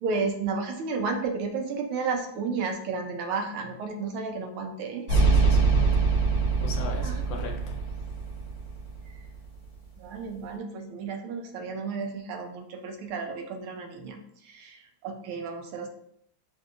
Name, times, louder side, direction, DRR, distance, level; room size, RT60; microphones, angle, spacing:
voice 1, 0.0-5.1 7.0-7.2 9.1-9.2 10.0-15.9, right 4 dB, 80° right, 4 dB, 1.5 m, -32 dB
voice 2, 5.1-6.0 6.6-7.8, left 4 dB, 70° left, 2 dB, 1.2 m, -37 dB
sound 1, 5.1-9.4, right 4 dB, 40° right, 1.0 m, -24 dB
6.3 x 2.7 x 2.5 m, 0.69 s
omnidirectional pair, 2.4 m